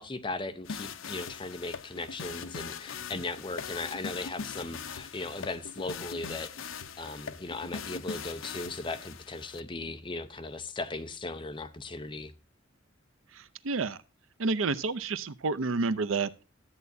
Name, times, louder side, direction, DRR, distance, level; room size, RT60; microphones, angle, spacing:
voice 1, 0.0-6.5 7.0-12.3, left 2 dB, 25° left, 0.7 m, -37 dB
sound 1, 0.7-9.6, left 6 dB, 75° left, 0.6 m, -41 dB
voice 2, 13.3-14.0 14.4-16.4, right 4 dB, 80° right, 0.6 m, -30 dB
13.0 x 8.1 x 2.6 m
head